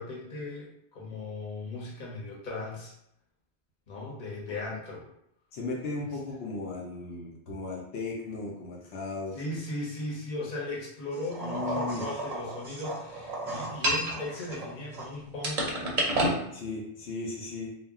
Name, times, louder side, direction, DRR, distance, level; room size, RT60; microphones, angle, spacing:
voice 1, 0.0-2.9 3.9-5.0 9.3-15.8, left 2 dB, 50° left, -4 dB, 0.9 m, -37 dB
voice 2, 5.5-9.6 11.4-12.2 16.5-17.7, left 3 dB, 75° left, -3 dB, 0.8 m, -36 dB
sound 1, 11.3-15.0 15.4-16.4, right 1 dB, 45° right, 0.6 m, -31 dB
2.2 x 2.1 x 3.5 m, 0.76 s
omnidirectional pair, 1.2 m